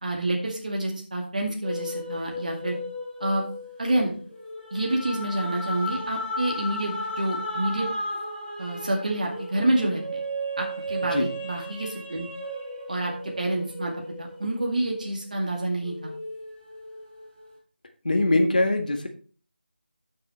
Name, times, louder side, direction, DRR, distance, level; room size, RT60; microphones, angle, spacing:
voice 1, 0.0-2.8 3.2-3.4 3.8-4.1 4.7-7.9 8.6-10.0 10.6-12.3 12.9-13.9 14.2-16.1, right 1 dB, 45° right, 0 dB, 2.1 m, -28 dB
Cango Caves guide sings, 1.6-15.4 15.8-17.4, equal, 15° right, 3.5 m, -35 dB
voice 2, 18.0-19.1, left 2 dB, 50° left, 5 dB, 1.7 m, -22 dB
13.0 x 6.8 x 3.2 m, 0.40 s
figure-of-eight pair, 165°, 6 cm